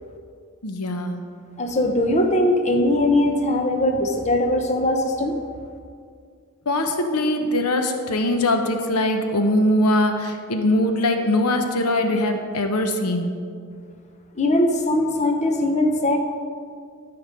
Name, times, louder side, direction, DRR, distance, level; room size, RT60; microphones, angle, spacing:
voice 1, 0.6-1.2 6.7-13.3, left 1 dB, 80° left, 6 dB, 0.9 m, -22 dB
voice 2, 1.6-5.3 14.4-16.2, left 1 dB, 30° left, 4 dB, 0.7 m, -20 dB
12.5 x 5.1 x 5.1 m, 2.2 s
head